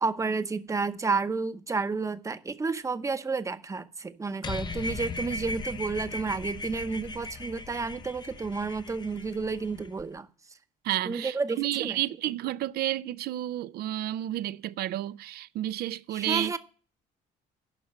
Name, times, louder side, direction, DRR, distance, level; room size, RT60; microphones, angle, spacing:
voice 1, 0.0-10.3 11.0-12.0 16.1-16.6, right 4 dB, 20° right, 0.8 m, -31 dB
sound 1, 4.4-10.0, left 3 dB, 25° left, 0.5 m, -38 dB
voice 2, 10.8-16.5, right 14 dB, 70° right, 0.5 m, -31 dB
11.0 x 5.7 x 7.9 m
cardioid pair, 110°, 17 cm